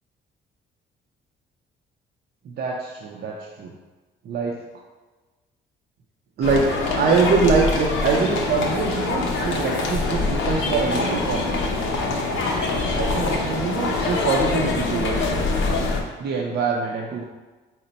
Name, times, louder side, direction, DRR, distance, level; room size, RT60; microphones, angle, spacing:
voice 1, 2.4-3.7 4.2-4.6 6.4-6.7 7.0-11.6 12.5-15.3 16.2-17.2, right 4 dB, 55° right, -2 dB, 0.5 m, -24 dB
sound 1, 6.4-16.0, left 3 dB, 80° left, 0.6 m, -24 dB
4.1 x 2.1 x 3.9 m, 1.2 s
cardioid pair, 90°, 20 cm